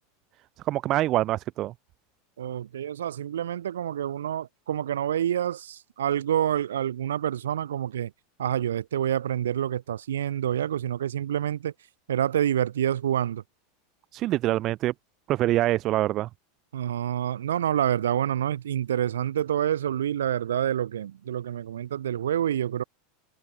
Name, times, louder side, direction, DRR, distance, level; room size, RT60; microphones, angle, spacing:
voice 1, 0.6-1.7 14.1-14.9 15.3-16.3, right 15 dB, 45° right, 1.5 m, -25 dB
voice 2, 2.4-8.1 8.4-11.7 12.1-13.4 16.7-22.8, right 10 dB, 75° right, 1.8 m, -27 dB
hypercardioid pair, 90°, 0 cm